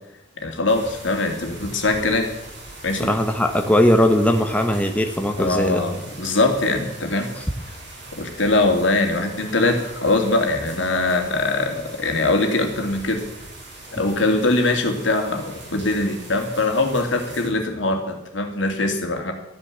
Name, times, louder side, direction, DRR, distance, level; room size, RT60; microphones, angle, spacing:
voice 1, 0.4-2.3 2.8-3.1 5.4-7.3 8.1-13.3 13.9-19.3, left 2 dB, 75° left, 4 dB, 2.6 m, -22 dB
sound 1, 0.7-17.5, right 2 dB, 60° right, 6.2 m, -41 dB
voice 2, 3.0-5.8, left 1 dB, 5° left, 4 dB, 1.0 m, -19 dB
13.5 x 9.9 x 7.3 m, 0.92 s
head